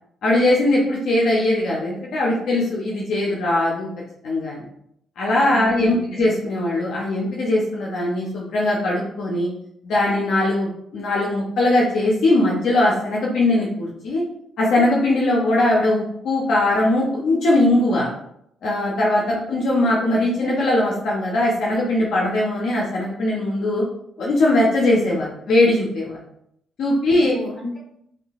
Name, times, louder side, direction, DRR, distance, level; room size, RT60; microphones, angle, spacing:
voice 1, 0.2-3.9 4.2-4.6 5.2-9.5 9.8-14.2 14.6-18.1 18.6-19.2 19.5-23.8 24.2-26.2 26.8-27.3, left 1 dB, 70° left, -4 dB, 0.7 m, -20 dB
voice 2, 5.5-6.2 19.3-19.5 27.1-27.8, equal, 35° left, -4 dB, 1.4 m, -34 dB
3.6 x 2.7 x 2.4 m, 0.74 s
cardioid pair, 90°, 0 cm